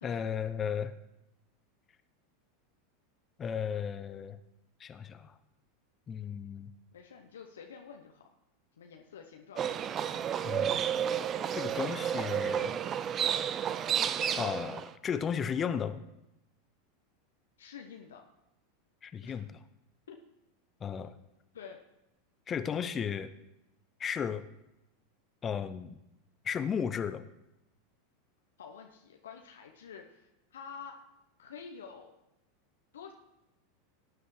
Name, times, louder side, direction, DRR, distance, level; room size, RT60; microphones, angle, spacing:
voice 1, 0.0-0.9 3.4-4.4 4.8-5.4 6.1-6.7 10.4-10.8 11.5-12.8 14.4-16.0 19.0-19.6 20.8-21.1 22.5-23.3 24.0-24.4 25.4-26.0 26.4-27.2, left 7 dB, 30° left, 12 dB, 0.7 m, -34 dB
voice 2, 6.9-8.3 8.8-10.7 17.6-18.2 19.2-19.4 20.1-20.2 21.5-21.8 28.6-31.0 31.4-32.1 32.9-33.1, left 6 dB, 75° left, 2 dB, 0.9 m, -49 dB
Livestock farm animals working animals, 9.6-14.9, right 9 dB, 35° right, 0.5 m, -31 dB
18.0 x 9.7 x 3.3 m, 0.90 s
figure-of-eight pair, 85°, 0 cm